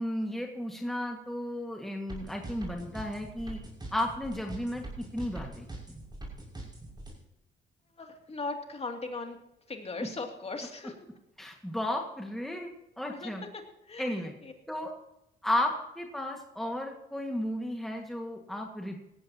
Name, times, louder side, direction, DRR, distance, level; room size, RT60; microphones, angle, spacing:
voice 1, 0.0-3.6 3.9-6.0 10.0-10.1 11.4-13.4 14.0-14.3 14.7-14.9 15.4-19.0, left 1 dB, ahead, 2 dB, 1.9 m, -34 dB
sound 1, 2.1-7.1, right 1 dB, 20° right, 6.2 m, -42 dB
voice 2, 7.9-9.4 9.7-11.1 13.1-14.5 14.8-14.9, left 3 dB, 30° left, 3 dB, 2.7 m, -39 dB
18.5 x 15.0 x 2.9 m, 0.88 s
cardioid pair, 90°, 20 cm